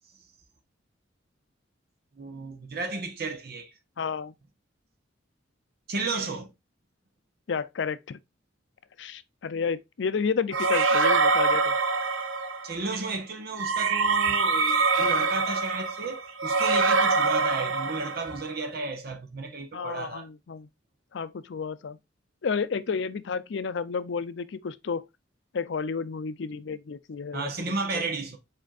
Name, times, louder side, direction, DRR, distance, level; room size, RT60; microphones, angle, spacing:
voice 1, 2.2-3.7 5.9-6.5 12.6-20.3 27.3-28.4, right 3 dB, 55° right, 1.0 m, -33 dB
voice 2, 4.0-4.3 7.5-8.2 9.0-11.8 19.7-20.7 21.1-22.0 22.4-25.0 25.5-27.5 27.9-28.0, left 5 dB, 65° left, 0.4 m, -31 dB
sound 1, 10.5-12.7 13.6-18.5, right 4 dB, 85° right, 0.6 m, -24 dB
5.0 x 4.4 x 2.4 m
head